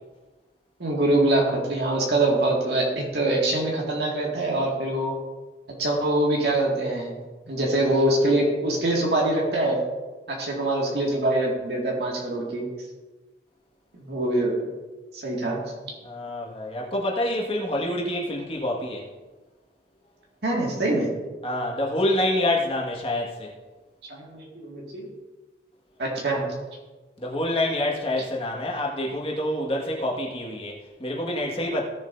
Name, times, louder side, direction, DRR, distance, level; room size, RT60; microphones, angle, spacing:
voice 1, 0.8-5.1 5.8-7.2 7.5-9.8 10.3-12.7 14.0-14.5 15.1-15.6 20.4-21.1 24.1-25.1 26.0-26.5, right 1 dB, 70° right, -3 dB, 2.1 m, -24 dB
voice 2, 16.0-19.0 21.4-23.5 27.2-31.8, left 1 dB, 30° left, -2 dB, 1.7 m, -27 dB
16.5 x 7.4 x 2.7 m, 1.2 s
head